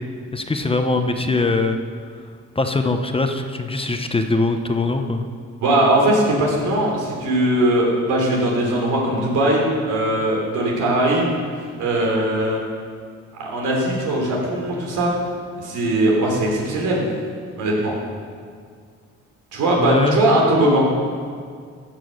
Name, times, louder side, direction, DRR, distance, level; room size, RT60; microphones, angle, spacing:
voice 1, 0.3-1.8 2.5-5.2 19.8-20.2, left 3 dB, 20° left, 6 dB, 0.9 m, -21 dB
voice 2, 5.6-11.4 11.8-12.6 13.4-15.1 15.6-17.0 17.6-18.0 19.5-20.9, right 1 dB, 85° right, -2 dB, 3.5 m, -20 dB
15.5 x 6.1 x 6.6 m, 2.1 s
cardioid pair, 90°, 30 cm